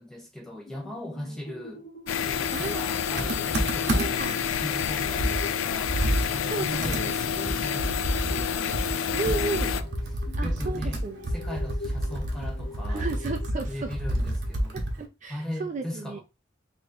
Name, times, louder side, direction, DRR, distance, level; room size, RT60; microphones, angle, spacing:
voice 1, 0.0-1.9 2.2-6.0 6.3-9.9 10.4-11.0 11.3-13.1 13.7-14.8 15.3-16.2, left 1 dB, 5° left, 0.9 m, -38 dB
sound 1, 0.7-15.1, left 3 dB, 55° left, 1.0 m, -46 dB
sound 2, 2.1-9.8, left 7 dB, 90° left, 0.3 m, -28 dB
voice 2, 2.5-2.8 3.8-4.4 6.5-7.2 9.1-9.7 10.4-11.3 12.9-13.9 14.7-16.2, right 3 dB, 40° right, 0.4 m, -34 dB
Computer keyboard, 3.2-4.3 4.8-4.9 5.2-15.0, right 1 dB, 55° right, 0.9 m, -29 dB
3.0 x 2.6 x 4.2 m
head